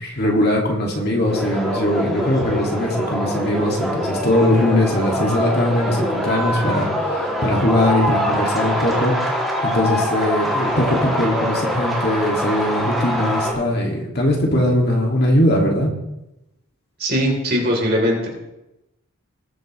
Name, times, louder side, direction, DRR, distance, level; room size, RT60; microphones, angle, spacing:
voice 1, 0.0-15.9, left 1 dB, 45° left, -1 dB, 2.2 m, -20 dB
sound 1, 1.3-13.5, equal, ahead, 2.5 m, -24 dB
voice 2, 17.0-18.3, equal, 45° right, -1 dB, 3.5 m, -20 dB
20.0 x 8.0 x 3.2 m, 0.92 s
head